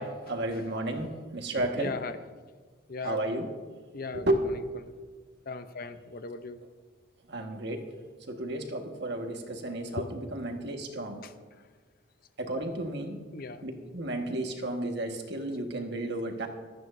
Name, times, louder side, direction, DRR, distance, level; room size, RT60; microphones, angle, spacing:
voice 1, 0.0-1.9 3.0-3.5 4.1-4.4 7.3-7.9 8.3-11.2 12.4-13.2 13.6-16.5, right 1 dB, 65° right, 3 dB, 1.6 m, -32 dB
voice 2, 1.6-2.2 2.9-3.2 3.9-4.3 4.5-4.9 5.5-6.6 10.0-10.1 11.2-11.3 13.3-13.7, left 3 dB, 55° left, 10 dB, 0.7 m, -38 dB
26.0 x 9.1 x 2.7 m, 1.4 s
head